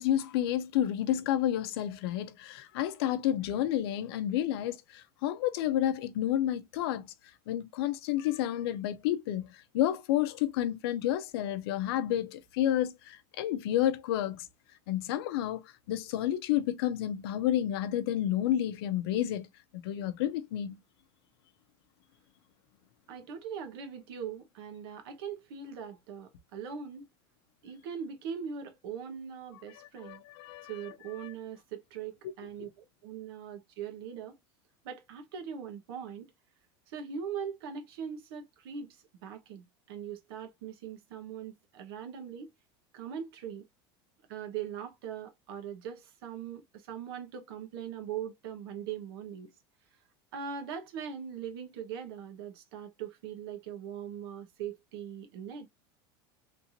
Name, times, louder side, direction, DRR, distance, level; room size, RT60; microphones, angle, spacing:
voice 1, 0.0-7.1 7.5-14.5 14.9-15.6 15.9-19.5 19.8-20.8 30.0-30.7, left 12 dB, 75° left, 0.6 m, -30 dB
voice 2, 23.1-27.1 27.6-30.2 30.6-34.4 34.8-36.3 36.9-39.0 39.2-42.5 42.9-43.7 44.3-49.5 50.3-55.7, right 7 dB, 75° right, 1.0 m, -41 dB
3.3 x 2.9 x 2.6 m
cardioid pair, 175°, 13 cm